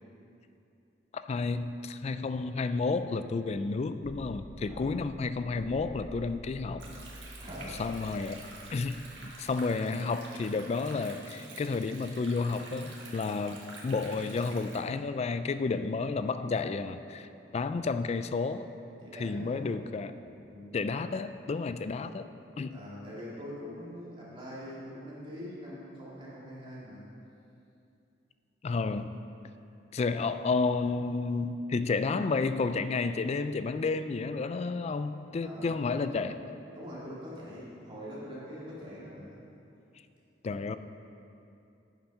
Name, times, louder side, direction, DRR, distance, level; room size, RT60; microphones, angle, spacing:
voice 1, 1.1-6.8 7.8-8.4 8.7-9.0 9.4-17.3 17.5-18.7 19.2-20.1 20.7-22.2 22.6-22.8 28.6-29.2 29.9-36.4 40.4-40.8, left 4 dB, 35° left, 11 dB, 0.3 m, -31 dB
sound 1, 4.0-9.5, equal, ahead, 0.7 m, -48 dB
voice 2, 4.6-5.0 7.4-7.8 19.0-19.7 20.2-20.8 22.7-27.1 35.4-36.2 36.7-39.4, equal, 30° right, -8 dB, 2.6 m, -44 dB
Stream, 6.8-14.8, right 2 dB, 90° right, 1.8 m, -48 dB
9.1 x 7.1 x 5.5 m, 2.7 s
head